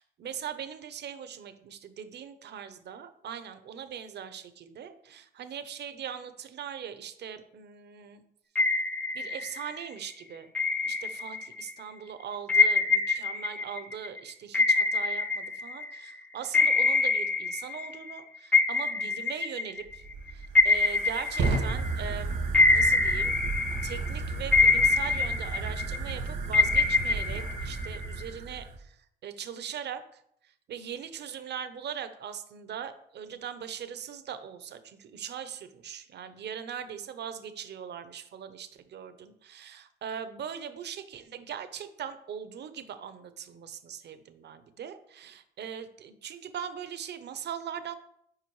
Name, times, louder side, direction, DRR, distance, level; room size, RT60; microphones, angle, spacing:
voice 1, 0.0-8.2 9.1-10.5 10.9-20.0 20.3-22.4 22.7-23.3 23.8-29.0 29.2-30.2 30.7-48.0, right 8 dB, 60° right, 11 dB, 0.7 m, -40 dB
sound 1, 8.6-9.8 10.5-11.7 12.5-16.1 16.5-18.2 18.5-22.1 22.5-24.1 24.5-26.1 26.5-28.2, left 3 dB, 5° left, 0.4 m, -25 dB
Fire, 19.8-28.8, right 3 dB, 90° right, 1.6 m, -33 dB
7.5 x 4.9 x 3.1 m, 0.71 s
cardioid pair, 90°, 20 cm